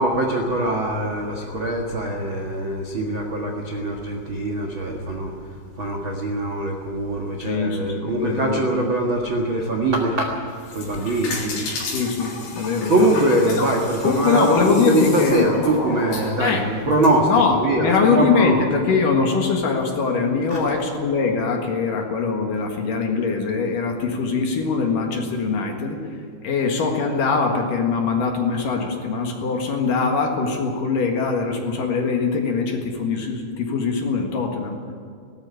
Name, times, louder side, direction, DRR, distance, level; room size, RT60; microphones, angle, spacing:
voice 1, 0.0-10.4 10.7-11.7 12.9-18.7 20.5-20.6, right 1 dB, 80° right, 0 dB, 1.1 m, -23 dB
voice 2, 7.4-8.7 11.9-13.0 13.6-13.7 14.0-15.5 16.4-16.6 17.3-26.0 26.4-34.8, left 5 dB, 60° left, 2 dB, 2.7 m, -22 dB
sound 1, 10.5-17.1, left 3 dB, 85° left, 5.9 m, -32 dB
18.5 x 14.0 x 10.0 m, 2.2 s
omnidirectional pair, 5.4 m